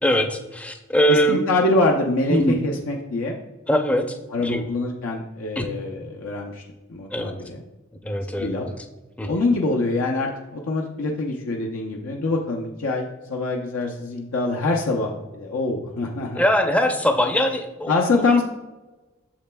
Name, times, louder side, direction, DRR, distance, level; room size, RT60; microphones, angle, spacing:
voice 1, 0.0-1.4 2.3-2.5 3.7-4.7 5.6-5.7 7.1-7.3 8.0-8.7 9.2-9.3 16.3-17.9, equal, 5° left, 5 dB, 0.5 m, -22 dB
voice 2, 1.1-3.4 4.3-6.6 6.9-7.6 8.4-8.7 9.2-16.4 17.9-18.4, left 2 dB, 80° left, 0 dB, 0.7 m, -24 dB
8.7 x 6.7 x 2.2 m, 1.1 s
head